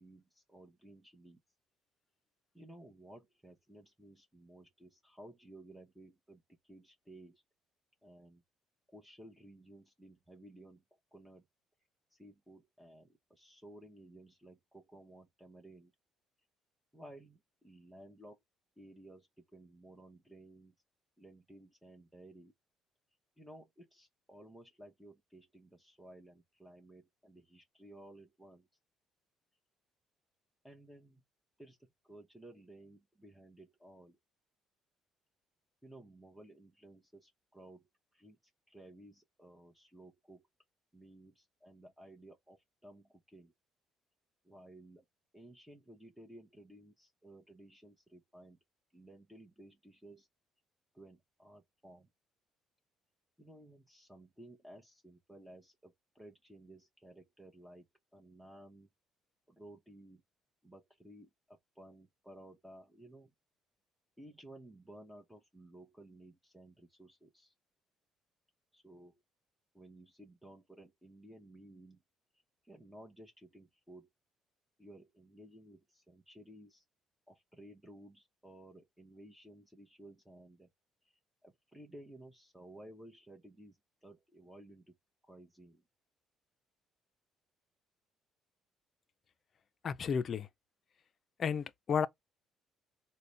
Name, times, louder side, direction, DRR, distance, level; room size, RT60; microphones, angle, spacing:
voice 1, 0.0-1.4 2.5-7.4 8.0-8.4 8.9-10.8 11.1-11.5 12.1-15.9 16.9-18.4 18.8-20.7 21.2-22.5 23.4-28.7 30.6-31.2 31.6-34.2 35.8-38.4 38.7-40.5 40.9-43.5 44.4-45.0 45.3-48.6 48.9-50.3 50.9-52.1 53.4-57.9 58.1-58.9 59.5-60.2 60.6-63.3 64.2-67.5 68.7-69.2 69.7-72.0 72.6-74.1 74.8-76.8 77.3-80.7 81.0-81.1 81.4-85.0 85.2-85.8, right 1 dB, 5° right, 1.0 m, -56 dB
voice 2, 89.8-90.5 91.4-92.1, left 6 dB, 50° left, 0.4 m, -32 dB
3.8 x 2.2 x 3.2 m
supercardioid pair, 80°, 0 cm